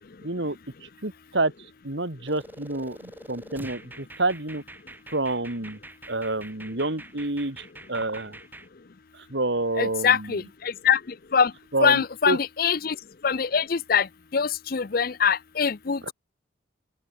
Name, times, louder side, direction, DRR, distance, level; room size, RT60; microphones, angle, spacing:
voice 1, 0.2-4.6 5.1-5.8 6.1-8.4 9.1-10.3 11.7-12.4 16.0-16.1, right 2 dB, 65° right, 2.4 m, -29 dB
sound 1, 2.3-8.7, right 1 dB, 10° right, 3.4 m, -45 dB
voice 2, 9.8-11.0 11.3-11.5 11.8-13.0 13.2-16.0, left 6 dB, 45° left, 0.5 m, -23 dB
open air
head